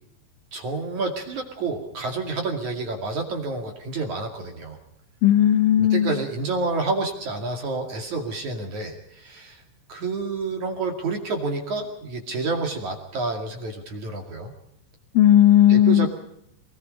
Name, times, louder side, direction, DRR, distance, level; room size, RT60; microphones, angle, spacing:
voice 1, 0.5-4.8 5.8-9.6 9.9-14.5 15.7-16.1, right 3 dB, 45° right, 3 dB, 3.0 m, -29 dB
voice 2, 5.2-6.2 15.2-16.1, left 11 dB, 85° left, 10 dB, 3.8 m, -16 dB
24.5 x 21.0 x 5.4 m, 0.74 s
omnidirectional pair, 5.6 m